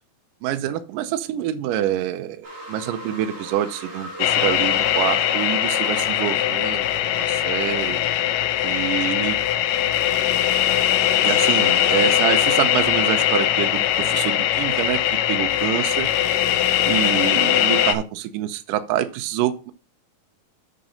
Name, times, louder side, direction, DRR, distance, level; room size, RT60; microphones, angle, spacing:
voice 1, 0.4-6.9 7.1-8.0 8.6-9.4 11.2-15.0 15.3-16.1 16.9-19.7, right 11 dB, 75° right, 9 dB, 2.2 m, -26 dB
sound 1, 2.4-7.7, right 1 dB, 40° right, 4.9 m, -39 dB
sound 2, 4.2-17.9, left 12 dB, 80° left, 2.2 m, -21 dB
9.1 x 4.8 x 5.2 m, 0.34 s
omnidirectional pair, 4.0 m